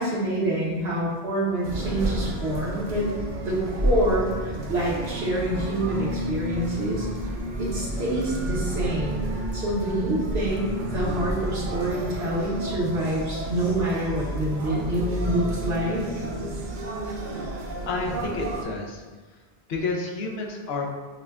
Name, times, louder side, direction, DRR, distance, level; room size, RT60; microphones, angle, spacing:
voice 1, 0.0-3.1 3.4-7.1 7.6-9.3 9.5-16.0, right 1 dB, 70° right, -6 dB, 1.2 m, -27 dB
sound 1, 1.6-18.6, right 1 dB, 55° right, 0.6 m, -30 dB
voice 2, 17.9-19.0 19.7-20.9, left 3 dB, 75° left, 0 dB, 0.9 m, -30 dB
5.9 x 2.2 x 2.3 m, 1.4 s
omnidirectional pair, 1.1 m